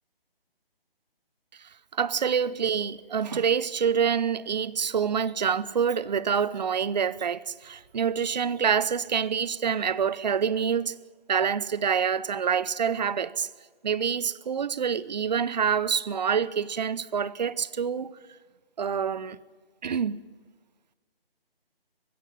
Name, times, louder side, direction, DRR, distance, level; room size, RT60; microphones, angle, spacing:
voice 1, 1.9-10.9 11.3-13.5 13.8-18.2 18.8-19.4 19.8-20.2, right 7 dB, 45° right, 0.8 m, -26 dB
21.5 x 16.5 x 9.1 m
figure-of-eight pair, 150°, 30 cm